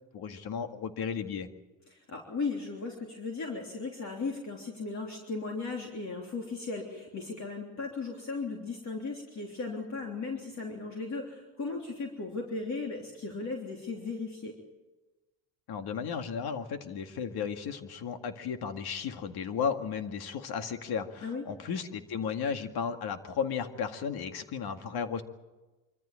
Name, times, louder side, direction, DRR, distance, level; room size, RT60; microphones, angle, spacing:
voice 1, 0.1-1.5 15.7-25.2, left 6 dB, 50° left, 7 dB, 2.1 m, -34 dB
voice 2, 1.9-14.6 21.2-21.4, left 4 dB, 35° left, 0 dB, 3.5 m, -36 dB
24.5 x 14.0 x 8.8 m, 1.2 s
supercardioid pair, 95°, 48 cm